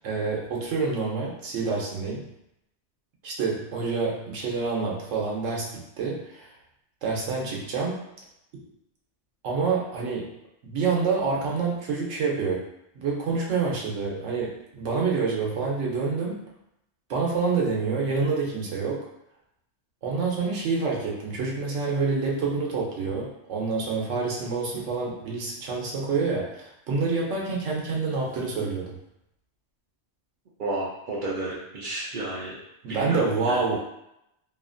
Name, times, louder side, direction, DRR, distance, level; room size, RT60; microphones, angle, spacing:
voice 1, 0.0-2.3 3.2-6.5 7.0-8.0 9.4-10.3 10.6-12.6 13.0-16.4 17.1-19.0 20.0-29.0 32.8-33.7, right 4 dB, 80° right, -2 dB, 1.0 m, -27 dB
voice 2, 30.6-32.6 32.9-33.6, right 2 dB, 60° right, -4 dB, 0.6 m, -31 dB
2.8 x 2.3 x 2.5 m, 0.82 s
omnidirectional pair, 1.2 m